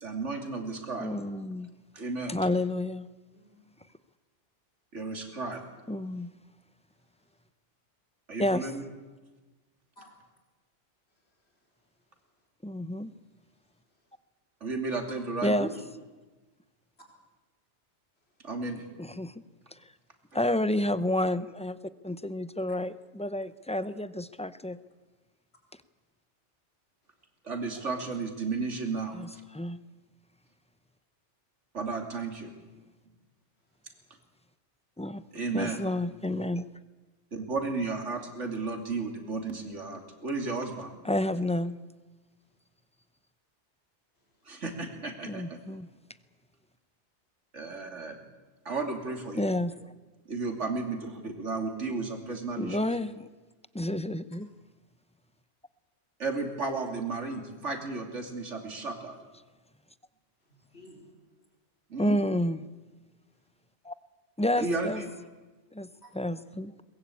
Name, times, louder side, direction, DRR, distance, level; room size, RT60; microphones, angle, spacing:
voice 1, 0.0-1.1 1.9-2.4 4.9-5.6 8.3-8.8 14.6-15.7 18.4-18.9 27.4-29.2 31.7-32.5 35.3-35.8 37.3-40.9 44.4-45.6 47.5-48.2 48.6-49.5 50.3-52.8 56.2-59.2 61.9-62.2 64.6-65.1, right 3 dB, 80° right, 4 dB, 3.2 m, -33 dB
voice 2, 1.0-1.7 2.3-3.1 5.9-6.3 8.4-8.7 12.6-13.1 15.4-15.7 19.0-19.3 20.3-21.8 22.0-24.8 29.1-29.3 29.5-29.8 35.0-35.2 35.5-36.7 41.0-41.8 45.3-45.9 49.3-49.7 52.6-53.3 53.7-54.5 62.0-62.6 63.8-63.9 64.4-65.0 65.7-65.9 66.1-66.7, left 1 dB, 5° left, 13 dB, 0.5 m, -30 dB
voice 3, 3.3-3.7 6.9-7.4 10.0-10.2 11.1-12.2 13.1-14.2 18.2-18.5 27.1-27.2 33.9-34.1 41.1-41.2 42.4-42.6 44.1-44.6 60.4-61.1 66.0-66.2, left 1 dB, 60° left, 0 dB, 4.8 m, -60 dB
22.5 x 20.5 x 8.5 m, 1.3 s
omnidirectional pair, 1.2 m